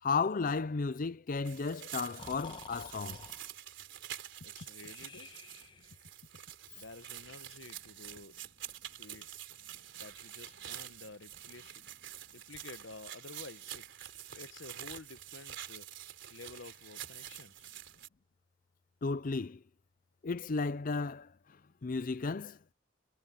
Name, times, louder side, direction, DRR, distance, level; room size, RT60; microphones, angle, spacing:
voice 1, 0.0-3.2 19.0-19.6 20.2-22.6, left 4 dB, 45° left, 0.5 m, -34 dB
sound 1, 1.4-18.1, right 11 dB, 65° right, 3.8 m, -47 dB
Breathing, 2.2-3.5 4.8-6.0, left 3 dB, 25° left, 1.5 m, -51 dB
voice 2, 4.4-5.4 6.7-8.4 9.0-9.3 9.9-11.8 12.3-13.9 14.3-15.9 16.3-17.7, left 3 dB, 70° left, 1.2 m, -51 dB
head